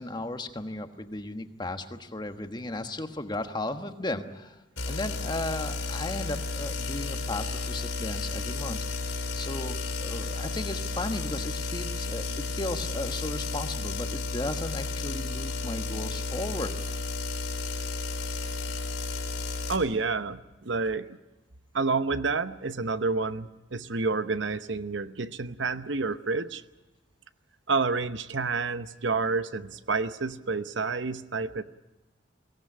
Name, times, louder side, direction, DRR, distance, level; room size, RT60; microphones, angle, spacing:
voice 1, 0.0-4.6 4.9-8.8 9.3-16.7, left 2 dB, 20° left, 7 dB, 1.3 m, -35 dB
sound 1, 4.8-19.8, left 3 dB, 80° left, 4.1 m, -33 dB
voice 2, 19.7-21.1 21.7-26.6 27.7-31.6, right 4 dB, 70° right, 12 dB, 0.9 m, -29 dB
23.0 x 17.5 x 9.9 m, 1.1 s
head